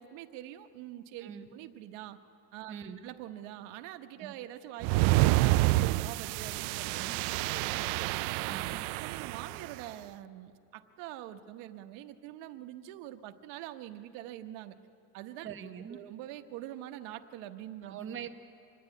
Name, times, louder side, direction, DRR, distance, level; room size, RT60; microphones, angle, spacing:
voice 1, 0.0-2.2 2.5-2.7 3.0-7.9 8.4-8.6 9.0-14.7 15.1-15.5 15.9-18.0, right 13 dB, 90° right, 7 dB, 1.1 m, -45 dB
voice 2, 2.7-3.0 4.2-4.3 6.9-7.2 8.5-8.8 15.4-16.0 17.8-18.3, right 8 dB, 30° right, 4 dB, 0.9 m, -42 dB
sound 1, 4.8-9.7, right 19 dB, 70° right, 0.5 m, -28 dB
25.5 x 10.5 x 9.7 m, 2.6 s
cardioid pair, 165°, 41 cm